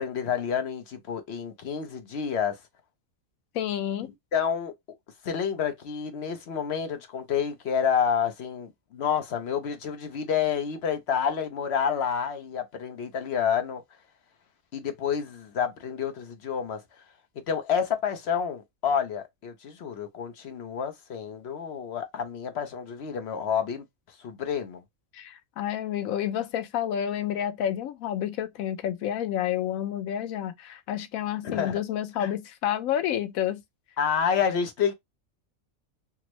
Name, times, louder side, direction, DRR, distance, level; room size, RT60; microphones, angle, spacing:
voice 1, 0.0-2.6 4.3-4.7 5.2-13.8 14.7-16.8 17.5-23.8 24.2-24.8 31.4-31.8 32.2-32.3 34.0-34.9, left 7 dB, 60° left, 0.8 m, -29 dB
voice 2, 3.5-4.1 25.1-33.6, left 10 dB, 80° left, 1.0 m, -29 dB
3.5 x 2.0 x 2.9 m
omnidirectional pair, 1.4 m